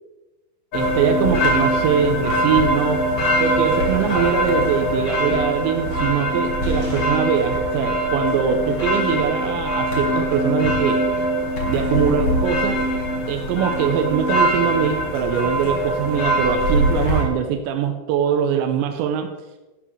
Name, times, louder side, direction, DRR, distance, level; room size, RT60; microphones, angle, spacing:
sound 1, 0.7-17.2, equal, 45° left, 2.1 m, -22 dB
voice 1, 0.7-3.1 3.4-11.0 11.7-12.8 13.3-19.3, right 7 dB, 85° right, 5 dB, 3.0 m, -22 dB
13.5 x 11.0 x 3.3 m, 1.1 s
omnidirectional pair, 5.3 m